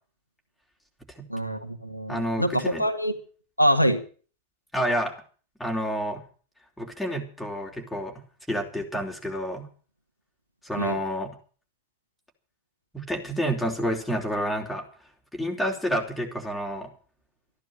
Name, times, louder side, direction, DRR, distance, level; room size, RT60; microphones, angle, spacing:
voice 1, 1.3-3.1 3.6-4.0 10.8-11.0, equal, 90° left, 6 dB, 1.8 m, -24 dB
voice 2, 2.1-2.8 4.7-5.1 5.6-6.2 6.8-8.1 8.5-9.7 10.6-11.3 12.9-14.8 15.3-16.9, equal, ahead, 0 dB, 4.2 m, -29 dB
15.0 x 10.5 x 7.5 m, 0.41 s
figure-of-eight pair, 90°, 0 cm